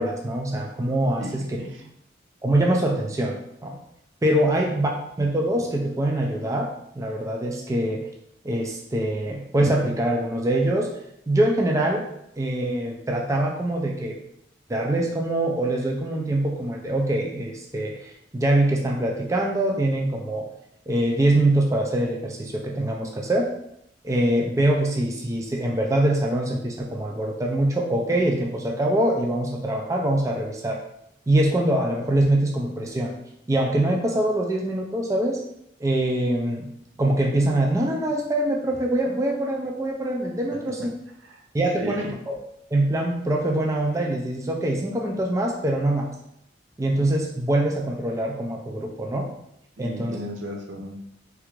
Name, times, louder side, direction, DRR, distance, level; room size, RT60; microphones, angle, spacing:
voice 1, 0.0-1.4 2.4-3.8 4.2-4.9 5.2-6.7 6.9-8.0 8.4-10.9 11.3-12.1 12.4-14.2 14.7-20.5 20.9-23.5 24.0-30.8 31.3-33.2 33.5-35.4 35.8-36.7 37.0-40.8 41.5-42.4 42.7-46.1 46.8-49.3 49.8-50.2, right 1 dB, 15° right, 0 dB, 0.3 m, -24 dB
voice 2, 1.2-1.9 4.5-4.8 40.8-40.9 41.2-41.4 41.7-42.1 49.8-51.0, right 1 dB, 90° right, 1 dB, 0.6 m, -35 dB
3.4 x 2.4 x 3.1 m, 0.76 s
head